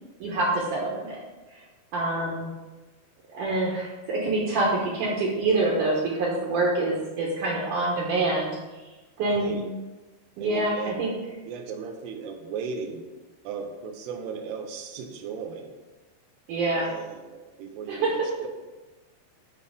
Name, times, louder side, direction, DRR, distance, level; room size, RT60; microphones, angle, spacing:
voice 1, 0.2-1.2 1.5-1.6 1.9-2.5 3.3-8.5 9.2-9.6 10.4-11.1 16.5-16.9 17.9-18.3, right 2 dB, 65° right, -3 dB, 2.3 m, -26 dB
voice 2, 9.3-9.6 10.4-11.0 11.5-13.0 13.4-15.7 16.7-18.5, right 6 dB, 90° right, 3 dB, 2.8 m, -36 dB
9.7 x 4.2 x 5.2 m, 1.2 s
omnidirectional pair, 4.6 m